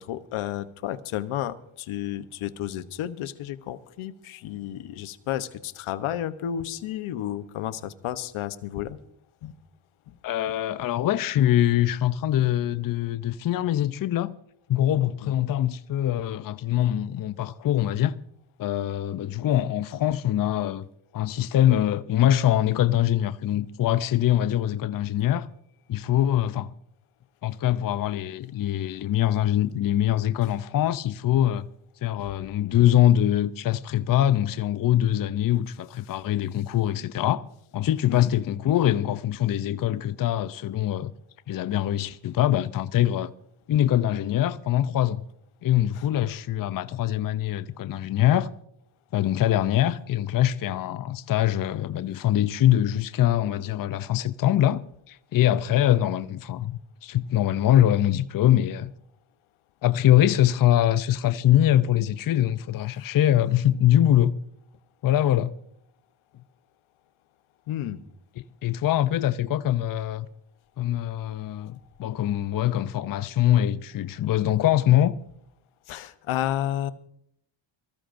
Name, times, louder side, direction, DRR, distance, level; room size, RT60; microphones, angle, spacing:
voice 1, 0.0-9.0 9.4-9.5 15.2-15.3 32.2-32.3 38.1-38.3 67.7-68.0 75.9-76.9, left 11 dB, 75° left, 1.0 m, -32 dB
voice 2, 10.2-14.3 14.7-18.2 18.6-20.9 21.1-25.5 25.9-26.7 27.4-31.7 32.0-37.4 37.7-41.1 41.5-43.3 43.7-45.2 45.6-48.5 49.1-58.9 59.8-64.4 65.0-65.5 68.6-70.3 70.8-75.1, left 12 dB, 45° left, 0.6 m, -23 dB
23.5 x 14.5 x 2.6 m
cardioid pair, 90°, 50 cm